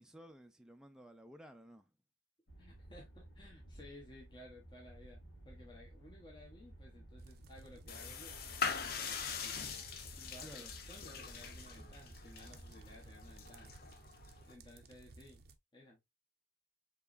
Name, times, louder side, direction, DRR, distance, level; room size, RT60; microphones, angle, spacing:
voice 1, 0.0-1.9 10.4-10.7, equal, 5° right, 0.4 m, -55 dB
sound 1, 2.5-13.9, right 1 dB, 80° left, 1.7 m, -56 dB
voice 2, 2.6-8.4 8.7-9.6 10.2-13.8 14.5-15.4 15.7-16.0, left 1 dB, 25° left, 1.0 m, -57 dB
sound 2, 7.2-15.6, right 3 dB, 55° right, 0.5 m, -58 dB
sound 3, 7.9-14.5, left 6 dB, 55° left, 0.6 m, -43 dB
4.6 x 3.0 x 2.5 m
head